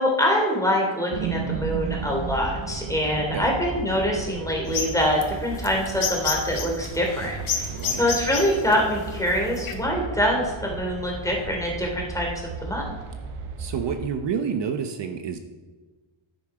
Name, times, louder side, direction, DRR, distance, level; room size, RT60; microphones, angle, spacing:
voice 1, 0.0-12.9, equal, 5° left, -1 dB, 3.1 m, -25 dB
sound 1, 1.1-14.1, right 5 dB, 90° right, 1.3 m, -34 dB
voice 2, 3.1-3.5 7.7-8.1 13.6-15.4, right 6 dB, 60° right, 7 dB, 0.9 m, -29 dB
sound 2, 4.7-9.7, left 6 dB, 70° left, 1.8 m, -30 dB
11.0 x 9.5 x 4.9 m, 1.2 s
cardioid pair, 105°, 50 cm